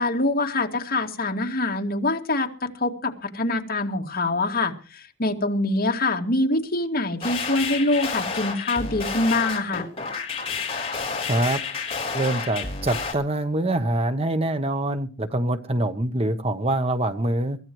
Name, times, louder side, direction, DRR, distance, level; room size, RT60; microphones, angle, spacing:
voice 1, 0.0-2.5 2.8-9.9, left 2 dB, 50° left, 2 dB, 2.3 m, -24 dB
sound 1, 7.2-13.1, left 5 dB, 30° left, 3.8 m, -30 dB
voice 2, 11.3-11.6 12.1-17.6, right 1 dB, 30° right, 9 dB, 1.0 m, -24 dB
22.5 x 15.0 x 3.1 m, 0.35 s
head